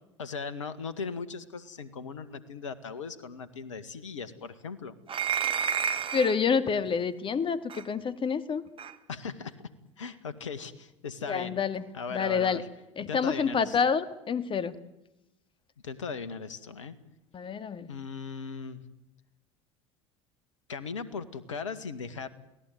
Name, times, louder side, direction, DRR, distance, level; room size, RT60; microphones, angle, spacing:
voice 1, 0.2-4.9 9.1-9.6 10.0-11.6 11.9-12.7 13.0-13.8 15.8-17.0 17.9-18.8 20.7-22.3, left 5 dB, 85° left, 15 dB, 2.0 m, -38 dB
sound 1, 5.1-6.4 7.7-7.8 8.8-8.9, right 7 dB, 35° right, 2.1 m, -30 dB
voice 2, 6.1-8.6 11.3-11.8 12.1-12.6 13.0-14.7 17.3-17.9, left 6 dB, 35° left, 13 dB, 2.3 m, -28 dB
29.0 x 18.5 x 9.5 m, 0.93 s
hypercardioid pair, 75°, 16 cm